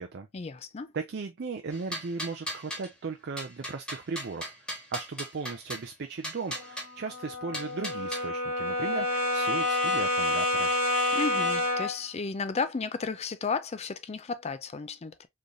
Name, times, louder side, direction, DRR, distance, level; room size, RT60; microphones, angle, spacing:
voice 1, 0.3-0.9 11.1-15.3, left 4 dB, 30° left, 0.4 m, -33 dB
voice 2, 0.9-4.5 4.9-10.7, right 4 dB, 50° right, 0.4 m, -36 dB
sound 1, 1.7-2.9 3.4-5.9 6.2-6.9 7.5-8.3, equal, 5° left, 1.3 m, -37 dB
Brass instrument, 6.5-12.0, left 2 dB, 50° left, 1.7 m, -28 dB
3.9 x 3.2 x 2.5 m
head